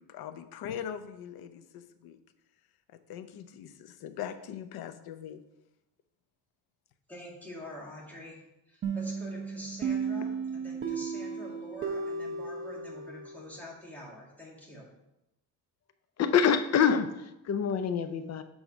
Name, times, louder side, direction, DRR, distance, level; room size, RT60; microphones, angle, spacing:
voice 1, 0.0-2.2 2.9-5.4, left 9 dB, 85° left, 9 dB, 0.7 m, -41 dB
voice 2, 7.1-8.4 8.7-14.9, equal, 5° left, -4 dB, 2.0 m, -46 dB
sound 1, 8.8-13.5, right 5 dB, 35° right, 0.8 m, -34 dB
voice 3, 16.2-18.4, left 7 dB, 45° left, 10 dB, 0.5 m, -26 dB
7.9 x 3.9 x 6.0 m, 0.89 s
cardioid pair, 155°, 36 cm